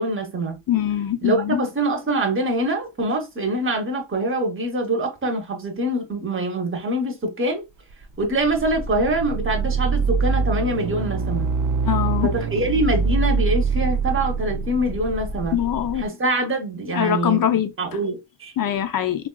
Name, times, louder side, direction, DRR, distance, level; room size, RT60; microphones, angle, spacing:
voice 1, 0.0-0.6 1.2-7.6 8.2-11.5 12.2-15.6 16.0-17.5 17.8-18.5, right 1 dB, 25° right, 0.9 m, -24 dB
voice 2, 0.7-1.6 11.9-12.3 15.5-16.0 16.9-17.7 18.6-19.3, left 10 dB, 45° left, 0.5 m, -22 dB
sound 1, 8.0-16.0, right 5 dB, 45° right, 0.5 m, -24 dB
3.6 x 2.4 x 2.2 m
cardioid pair, 105°, 47 cm